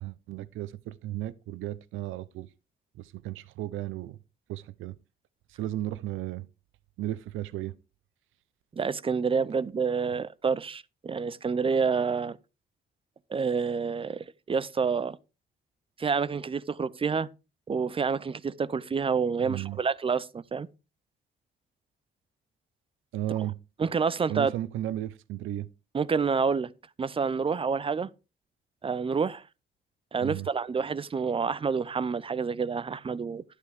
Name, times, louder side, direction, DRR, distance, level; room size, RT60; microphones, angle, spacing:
voice 1, 0.0-2.5 3.0-4.2 4.5-4.9 5.5-6.5 7.0-7.7 19.4-19.8 23.1-23.6 24.3-25.7 30.2-30.5, right 14 dB, 85° right, 0.6 m, -34 dB
voice 2, 8.7-12.4 13.3-15.2 16.0-17.3 17.7-20.7 23.8-24.5 25.9-26.7 27.0-28.1 28.8-29.4 30.1-33.4, right 5 dB, 25° right, 0.5 m, -28 dB
11.0 x 8.3 x 3.4 m
cardioid pair, 90°, 20 cm